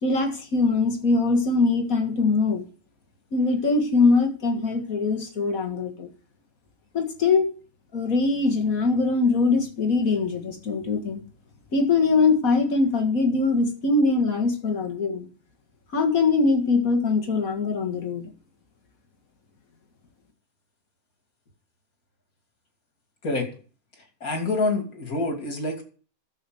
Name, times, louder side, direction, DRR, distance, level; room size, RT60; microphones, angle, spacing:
voice 1, 0.0-2.7 3.3-6.1 6.9-7.5 7.9-11.2 11.7-15.3 15.9-18.3, left 3 dB, 70° left, 4 dB, 2.1 m, -22 dB
voice 2, 24.2-25.8, left 2 dB, 90° left, 3 dB, 3.1 m, -26 dB
11.5 x 7.1 x 7.7 m, 0.40 s
omnidirectional pair, 1.5 m